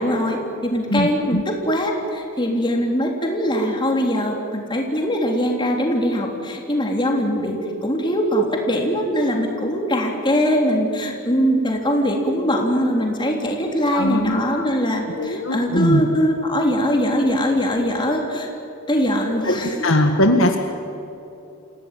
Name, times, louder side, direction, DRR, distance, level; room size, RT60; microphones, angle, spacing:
voice 1, 0.0-18.5 18.9-20.0, equal, 20° left, 1 dB, 3.5 m, -21 dB
voice 2, 0.9-1.4 13.9-14.7 15.2-16.0 19.4-20.6, left 1 dB, 60° left, 4 dB, 1.7 m, -20 dB
28.0 x 17.0 x 9.2 m, 3.0 s
head